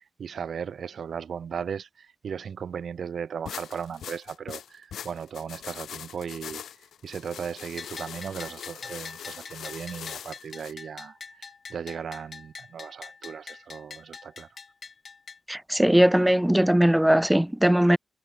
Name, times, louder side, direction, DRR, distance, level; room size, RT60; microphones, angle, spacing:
voice 1, 0.0-6.6 7.0-14.5, right 7 dB, 65° right, 2.8 m, -37 dB
sound 1, 3.5-10.7, left 9 dB, 80° left, 5.0 m, -41 dB
Bell, 7.8-15.4, left 5 dB, 50° left, 4.8 m, -44 dB
voice 2, 15.5-18.0, right 1 dB, 5° right, 2.2 m, -20 dB
cardioid pair, 65°, 0 cm